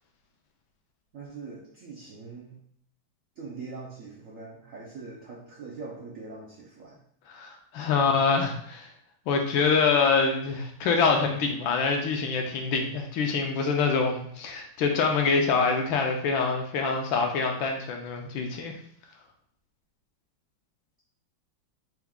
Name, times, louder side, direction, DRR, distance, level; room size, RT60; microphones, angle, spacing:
voice 1, 1.1-2.6 3.4-7.0, right 4 dB, 80° right, -4 dB, 0.7 m, -42 dB
voice 2, 7.3-8.9 9.3-18.7, left 5 dB, 75° left, 3 dB, 1.3 m, -25 dB
4.6 x 2.3 x 3.5 m, 0.65 s
omnidirectional pair, 2.3 m